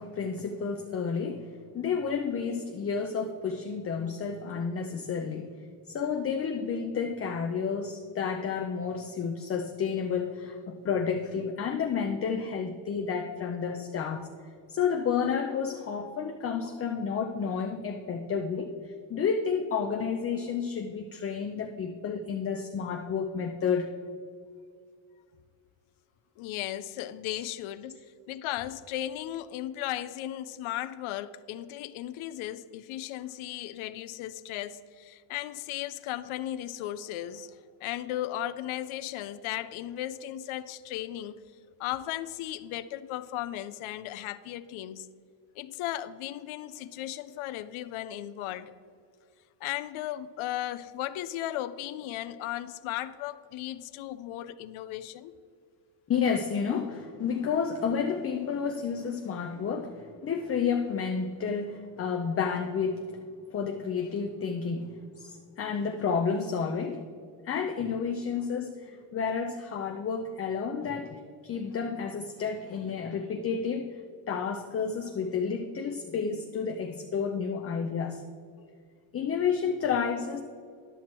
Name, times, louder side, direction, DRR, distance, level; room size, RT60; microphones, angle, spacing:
voice 1, 0.0-14.3 14.7-23.9 56.1-63.2 63.5-67.1 67.4-74.0 74.3-78.2 79.1-80.4, left 6 dB, 30° left, 0.5 m, -31 dB
voice 2, 26.4-41.3 41.8-45.1 45.6-48.7 49.6-55.3, left 13 dB, 75° left, 0.6 m, -36 dB
11.5 x 6.0 x 4.3 m
cardioid pair, 125°, 50 cm